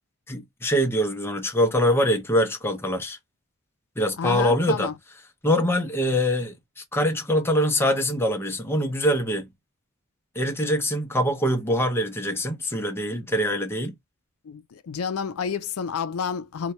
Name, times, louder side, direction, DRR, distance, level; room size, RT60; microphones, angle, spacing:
voice 1, 0.3-3.2 4.0-4.9 5.4-9.5 10.4-13.9, equal, 10° left, 0.6 m, -24 dB
voice 2, 4.2-4.9 14.4-16.7, left 6 dB, 80° left, 0.4 m, -30 dB
2.9 x 2.2 x 4.2 m
head